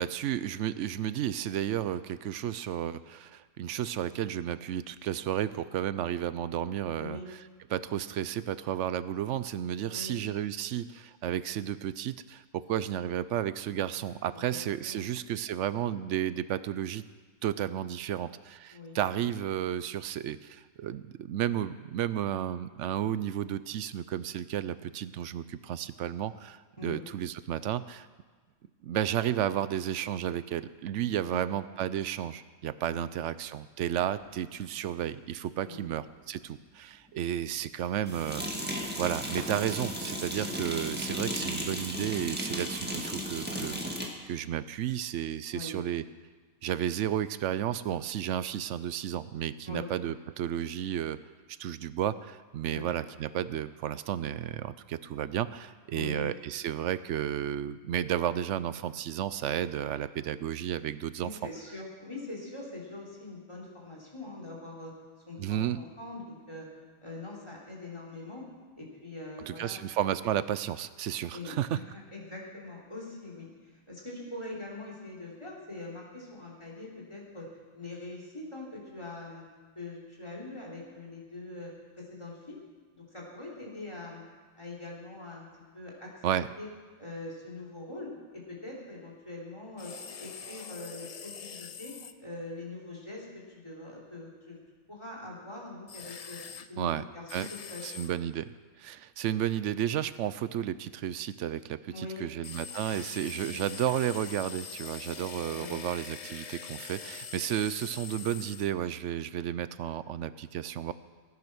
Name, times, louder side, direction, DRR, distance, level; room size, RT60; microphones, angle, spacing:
voice 1, 0.0-7.2 7.7-17.1 17.4-28.1 28.8-44.0 44.3-46.0 46.6-51.2 51.6-61.3 65.4-65.8 69.5-71.8 86.2-86.5 96.8-97.0 97.3-97.5 97.8-98.5 98.8-110.9, right 10 dB, 70° right, 15 dB, 0.9 m, -32 dB
voice 2, 7.0-7.3 9.9-10.2 14.3-15.0 18.7-19.0 26.8-27.0 31.2-31.4 32.8-33.0 35.6-35.9 45.5-45.8 49.6-49.9 52.7-53.1 55.9-56.3 61.2-64.9 65.3-66.7 67.0-68.4 68.8-69.8 71.3-77.5 77.7-79.4 79.7-81.7 82.0-82.6 82.9-84.2 84.5-85.5 85.7-86.2 86.6-86.7 87.0-89.9 90.2-91.9 92.2-93.3 93.5-94.6 94.9-96.4 96.7-98.1 101.9-102.3 102.9-103.0 103.4-103.6 105.5-105.8, left 2 dB, 20° left, -3 dB, 3.4 m, -43 dB
sound 1, 34.6-34.7 38.0-44.1, equal, 10° right, 1.6 m, -35 dB
sound 2, 89.8-92.1 95.9-96.7 97.3-98.1 102.4-108.7, left 7 dB, 55° left, 0.4 m, -43 dB
19.0 x 9.8 x 6.1 m, 1.4 s
omnidirectional pair, 1.4 m